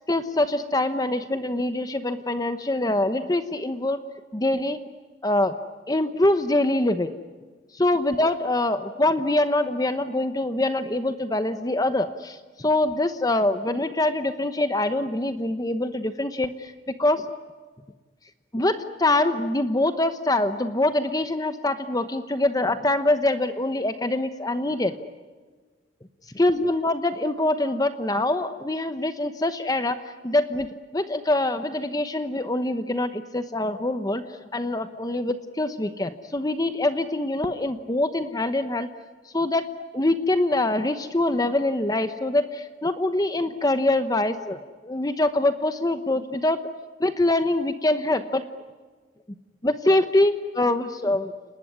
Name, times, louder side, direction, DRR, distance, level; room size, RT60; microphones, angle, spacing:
voice 1, 0.1-4.0 4.3-4.8 5.2-5.6 5.9-7.1 7.7-16.7 17.0-17.2 18.5-24.9 26.3-30.7 30.9-34.3 34.5-38.9 39.3-39.7 39.9-46.6 47.0-48.4 49.6-51.3, left 1 dB, 20° left, 9 dB, 1.0 m, -24 dB
29.5 x 19.5 x 9.6 m, 1.4 s
head